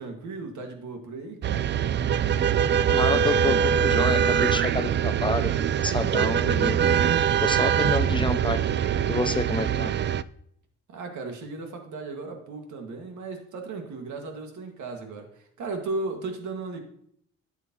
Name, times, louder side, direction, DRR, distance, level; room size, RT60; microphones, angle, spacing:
voice 1, 0.0-1.7 10.9-16.8, right 3 dB, 70° right, 4 dB, 2.0 m, -36 dB
sound 1, 1.4-10.2, right 8 dB, 40° right, 0.4 m, -23 dB
voice 2, 2.9-6.8 7.4-9.9, left 2 dB, 15° left, 8 dB, 0.5 m, -29 dB
11.5 x 7.1 x 3.0 m, 0.69 s
cardioid pair, 90°, 30 cm